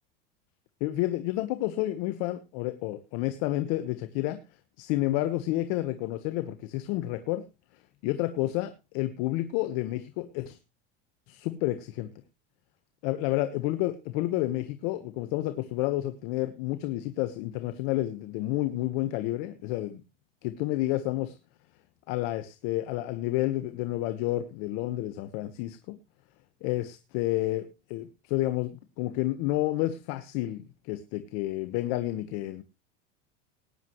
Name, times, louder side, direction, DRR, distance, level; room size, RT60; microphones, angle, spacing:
voice 1, 0.8-4.4 4.8-7.4 8.0-10.6 11.3-12.1 13.0-20.0 20.4-21.3 22.1-26.0 26.6-32.6, left 16 dB, 65° left, 10 dB, 1.2 m, -30 dB
19.0 x 9.7 x 3.1 m, 0.27 s
supercardioid pair, 110°, 30 cm